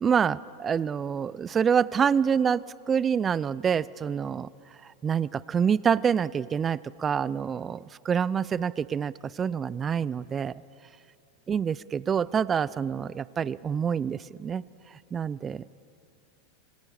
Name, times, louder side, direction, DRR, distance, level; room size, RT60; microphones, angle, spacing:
voice 1, 0.0-4.5 4.8-10.5 11.5-14.6 15.1-15.7, right 7 dB, 25° right, 21 dB, 0.5 m, -27 dB
26.5 x 24.0 x 5.0 m, 2.4 s
hypercardioid pair, 100°, 0 cm